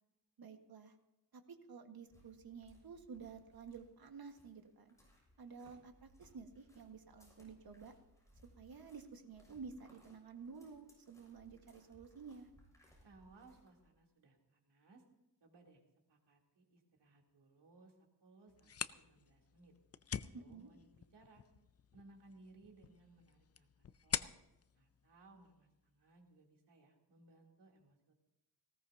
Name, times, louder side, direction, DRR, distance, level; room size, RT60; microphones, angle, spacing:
voice 1, 0.4-0.9 1.3-1.4 1.7-4.9 5.4-7.9 8.6-12.5 20.3-20.7, right 5 dB, 60° right, 5 dB, 1.7 m, -52 dB
sound 1, 2.0-13.9, equal, 10° left, 6.5 m, -67 dB
voice 2, 13.0-15.0 15.4-15.8 16.1-19.7 20.2-21.4 21.9-24.4 24.7-28.1, right 2 dB, 85° right, 0 dB, 3.3 m, -63 dB
sound 2, 18.5-26.0, left 8 dB, 40° left, 0.5 m, -47 dB
19.0 x 17.5 x 2.9 m, 0.94 s
wide cardioid pair, 140°, 40 cm